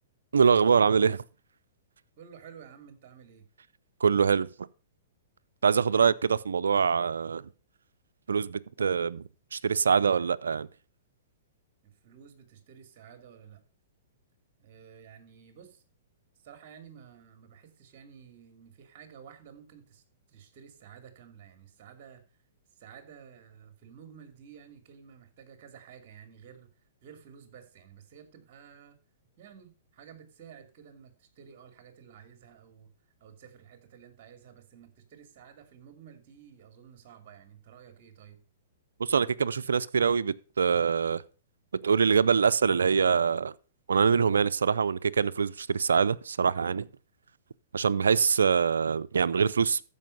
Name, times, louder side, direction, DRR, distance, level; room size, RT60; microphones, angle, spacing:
voice 1, 0.3-1.2 4.0-4.5 5.6-7.5 8.3-9.2 9.5-10.7 39.0-41.2 41.8-43.5 43.9-46.9 47.7-49.9, right 6 dB, 90° right, 0.5 m, -24 dB
voice 2, 2.2-3.5 11.8-13.6 14.6-15.8 16.4-20.0 20.3-22.2 22.7-26.7 27.0-29.0 29.4-32.9 33.2-38.4, right 8 dB, 50° right, 2.7 m, -52 dB
14.0 x 5.4 x 5.4 m
hypercardioid pair, 130°, 0 cm